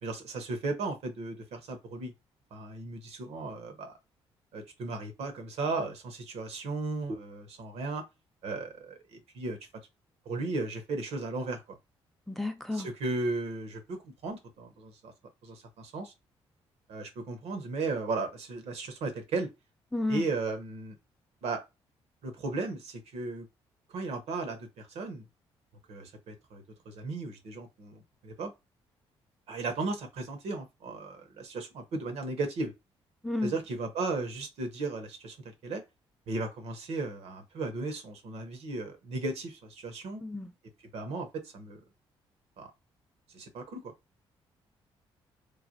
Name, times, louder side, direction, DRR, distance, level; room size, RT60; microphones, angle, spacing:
voice 1, 0.0-2.1 2.5-3.9 4.5-8.0 8.4-9.6 10.3-11.8 12.7-15.1 15.4-16.1 16.9-19.5 20.1-21.0 21.4-21.6 22.2-23.5 23.9-25.3 25.9-28.5 29.5-32.7 33.4-35.4 35.6-35.8 36.3-40.2 40.9-41.8 42.6-42.7 43.3-43.9, right 3 dB, 75° right, 0.8 m, -35 dB
voice 2, 12.3-12.9 19.9-20.3 33.2-33.5 40.2-40.5, left 2 dB, ahead, 0.5 m, -31 dB
3.1 x 2.1 x 2.5 m
supercardioid pair, 70°, 11 cm